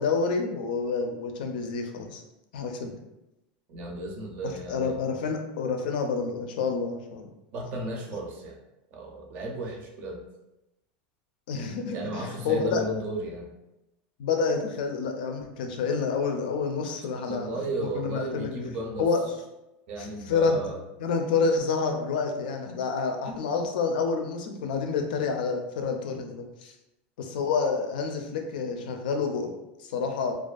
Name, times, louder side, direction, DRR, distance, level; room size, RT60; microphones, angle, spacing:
voice 1, 0.0-2.2 2.5-2.9 4.7-7.3 11.5-12.8 14.2-17.5 17.9-18.5 19.0-19.2 20.0-20.6 21.0-26.7 27.2-30.3, left 4 dB, 85° left, 4 dB, 0.4 m, -28 dB
voice 2, 3.7-5.0 7.5-8.6 8.9-10.2 11.9-13.5 17.3-19.1 19.9-20.8, right 1 dB, 40° right, 0 dB, 0.5 m, -34 dB
2.5 x 2.3 x 2.3 m, 0.92 s
supercardioid pair, 165°, 5 cm